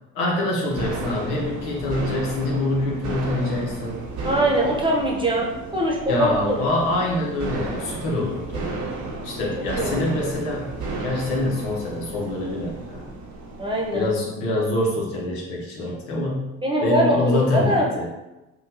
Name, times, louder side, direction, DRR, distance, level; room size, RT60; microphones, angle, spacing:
voice 1, 0.1-4.0 6.1-8.7 9.2-10.7 11.0-13.1 13.9-16.5 16.8-18.1, left 2 dB, 85° left, -2 dB, 0.9 m, -25 dB
sound 1, 0.7-14.2, right 3 dB, 55° right, 0.7 m, -33 dB
voice 2, 4.2-6.6 9.6-10.3 13.6-14.1 16.6-17.9, right 1 dB, 15° right, -2 dB, 0.9 m, -23 dB
3.7 x 2.3 x 2.7 m, 1.0 s
supercardioid pair, 70°, 34 cm